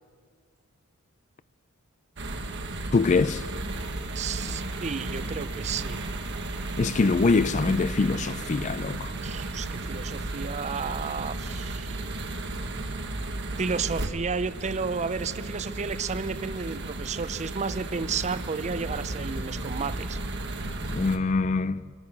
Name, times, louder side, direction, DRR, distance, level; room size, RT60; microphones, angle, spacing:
sound 1, 2.2-21.2, right 2 dB, 55° right, 1.5 m, -34 dB
voice 1, 2.9-3.4 6.8-9.1 20.9-21.8, left 4 dB, 35° left, 0.4 m, -24 dB
voice 2, 4.1-6.0 9.2-12.0 13.6-20.2, right 5 dB, 30° right, 0.5 m, -32 dB
25.0 x 10.5 x 9.7 m
head